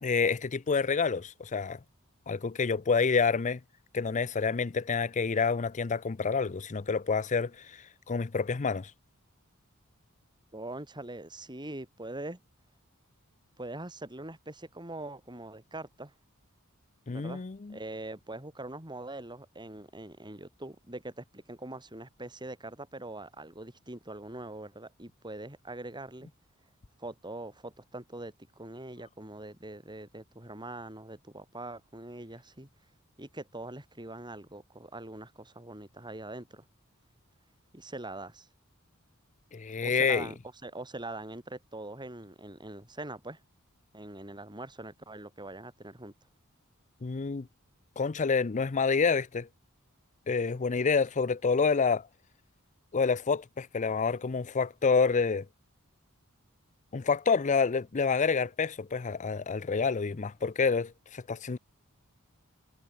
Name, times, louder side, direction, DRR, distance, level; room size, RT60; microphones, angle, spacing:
voice 1, 0.0-1.8 2.3-3.6 3.9-7.8 8.1-8.9 17.1-17.8 39.5-40.3 47.0-47.5 48.0-49.5 50.3-52.1 52.9-55.5 56.9-61.6, left 5 dB, 35° left, 0.5 m, -28 dB
voice 2, 10.5-12.4 13.6-16.1 17.0-17.4 17.7-26.3 27.0-32.7 33.2-36.6 37.7-38.5 39.8-43.4 43.9-46.1, right 2 dB, 20° right, 6.7 m, -43 dB
head